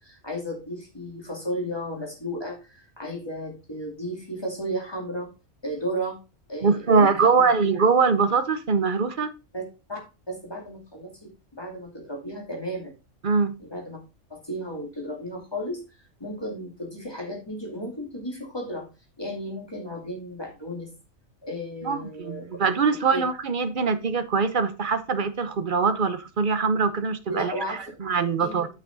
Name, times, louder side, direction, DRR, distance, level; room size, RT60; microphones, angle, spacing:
voice 1, 0.0-5.3 5.6-6.2 6.5-7.5 9.5-9.6 9.9-10.0 10.3-12.9 13.6-14.0 14.3-18.9 19.2-20.9 21.4-22.5 23.1-23.3 27.3-27.8 28.4-28.6, equal, 20° left, 0 dB, 2.8 m, -34 dB
voice 2, 6.6-9.3 13.2-13.5 21.8-28.7, right 5 dB, 45° right, 11 dB, 0.9 m, -23 dB
9.2 x 5.9 x 4.0 m, 0.29 s
omnidirectional pair, 1.4 m